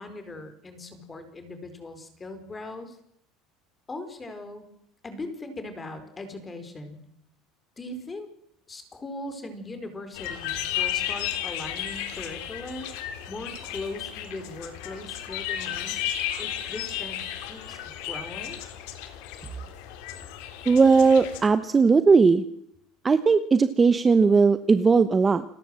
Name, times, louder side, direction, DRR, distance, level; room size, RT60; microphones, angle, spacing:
voice 1, 0.0-3.0 3.9-4.7 5.0-7.0 7.8-8.3 8.7-12.9 13.3-16.1 16.4-17.8 18.1-18.6, left 2 dB, 15° left, 9 dB, 4.3 m, -39 dB
sound 1, 10.1-21.4, left 11 dB, 70° left, 3.6 m, -34 dB
voice 2, 20.7-22.4 23.0-25.4, right 4 dB, 15° right, 11 dB, 1.0 m, -18 dB
29.0 x 19.5 x 7.7 m, 0.73 s
cardioid pair, 155°, 0 cm